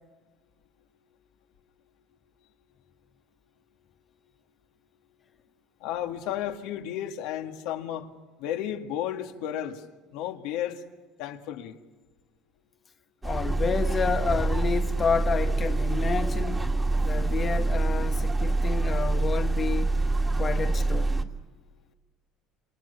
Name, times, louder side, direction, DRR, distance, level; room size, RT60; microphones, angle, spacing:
voice 1, 5.8-8.1 8.4-9.8 10.1-10.8 11.2-11.8, left 11 dB, 80° left, 2.2 m, -33 dB
voice 2, 13.2-16.7 17.0-20.0 20.4-21.1, left 6 dB, 30° left, 1.0 m, -30 dB
sound 1, 13.2-21.2, right 2 dB, 15° right, 2.0 m, -26 dB
27.5 x 27.0 x 7.1 m
cardioid pair, 125°, 0 cm